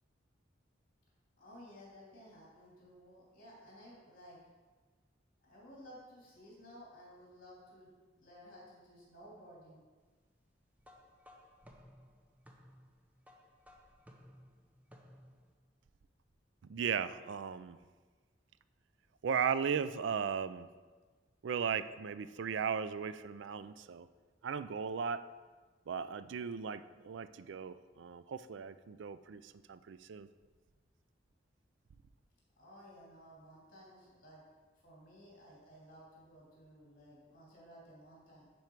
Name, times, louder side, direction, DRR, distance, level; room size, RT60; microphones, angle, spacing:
voice 1, 1.4-4.4 5.4-9.8 32.6-34.4 34.8-38.4, equal, 50° left, -5 dB, 2.8 m, -56 dB
sound 1, 10.8-15.5, equal, 10° right, 0.7 m, -59 dB
voice 2, 16.7-17.8 19.2-20.7 21.4-24.1 24.4-25.3 25.9-30.3, right 6 dB, 80° right, 14 dB, 0.4 m, -37 dB
10.5 x 4.6 x 4.6 m, 1.4 s
head